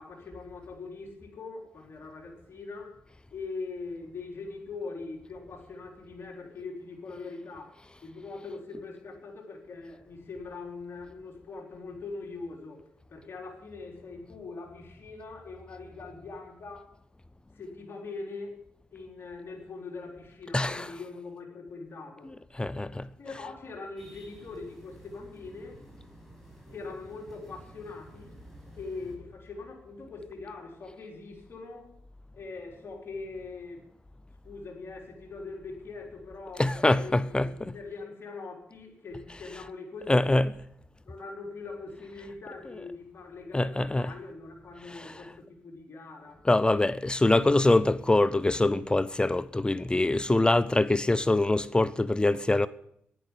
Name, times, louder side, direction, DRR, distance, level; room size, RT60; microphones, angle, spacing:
voice 1, 0.0-3.0 3.3-12.8 13.1-16.9 17.5-18.6 18.9-22.3 23.2-25.8 26.7-28.3 28.8-31.9 32.3-33.9 34.4-40.4 41.0-46.5, left 3 dB, 60° left, 4.1 m, -42 dB
voice 2, 20.5-21.0 22.5-23.1 36.6-37.7 40.1-40.5 43.5-44.1 44.9-45.3 46.4-52.7, left 2 dB, 20° left, 0.7 m, -24 dB
sound 1, 24.0-29.2, right 1 dB, 5° left, 6.1 m, -52 dB
11.0 x 9.9 x 10.0 m
cardioid pair, 55°, 5 cm